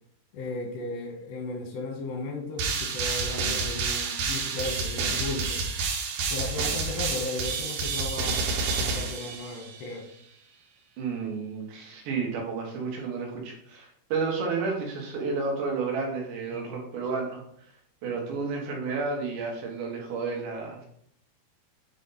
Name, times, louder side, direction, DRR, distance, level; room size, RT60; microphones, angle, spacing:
voice 1, 0.3-5.6 6.3-8.5 8.8-10.1 16.5-17.0 18.3-18.4, left 2 dB, 85° left, 2 dB, 3.6 m, -35 dB
sound 1, 2.6-9.9, right 4 dB, 70° right, 2.2 m, -29 dB
voice 2, 11.0-17.7 18.0-20.9, right 4 dB, 90° right, 0 dB, 3.8 m, -31 dB
9.4 x 4.1 x 4.0 m, 0.66 s
omnidirectional pair, 4.8 m